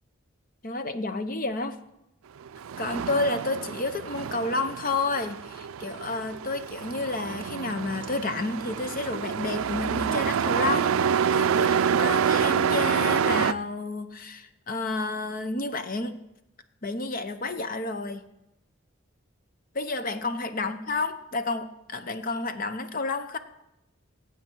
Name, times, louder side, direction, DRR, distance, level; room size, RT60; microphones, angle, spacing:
voice 1, 0.6-1.8 2.8-16.2 16.8-18.2 19.7-23.4, left 3 dB, 40° left, 9 dB, 0.7 m, -30 dB
Truck, 2.4-13.5, right 7 dB, 85° right, 0.4 m, -27 dB
18.0 x 8.6 x 4.5 m, 0.90 s
head